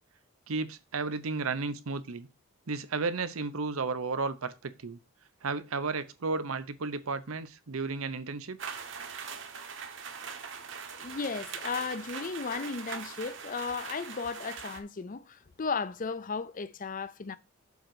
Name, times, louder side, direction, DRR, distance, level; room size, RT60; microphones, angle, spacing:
voice 1, 0.5-2.3 2.7-5.0 5.4-8.6, right 4 dB, 80° right, 0.8 m, -33 dB
sound 1, 8.6-14.8, right 6 dB, 55° right, 1.1 m, -41 dB
voice 2, 11.0-17.4, left 5 dB, 40° left, 0.4 m, -35 dB
7.1 x 3.9 x 6.3 m
head